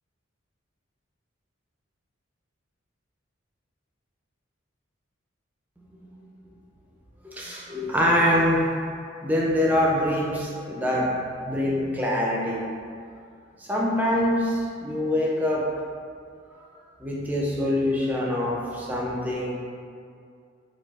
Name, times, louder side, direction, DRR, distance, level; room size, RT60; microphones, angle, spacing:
voice 1, 7.2-8.6 9.2-11.1 11.4-12.6 13.6-15.6 17.0-19.5, left 1 dB, 10° right, -4 dB, 0.3 m, -24 dB
4.0 x 2.3 x 2.3 m, 2.3 s
head